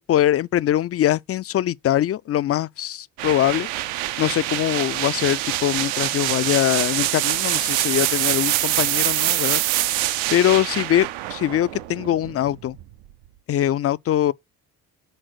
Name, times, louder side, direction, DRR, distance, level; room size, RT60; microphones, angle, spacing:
voice 1, 0.0-3.7 4.2-9.6 10.3-12.8 13.5-14.3, left 12 dB, 35° left, 0.4 m, -22 dB
sound 1, 3.2-12.9, right 14 dB, 75° right, 0.7 m, -25 dB
6.6 x 3.7 x 6.1 m
hypercardioid pair, 50°, 47 cm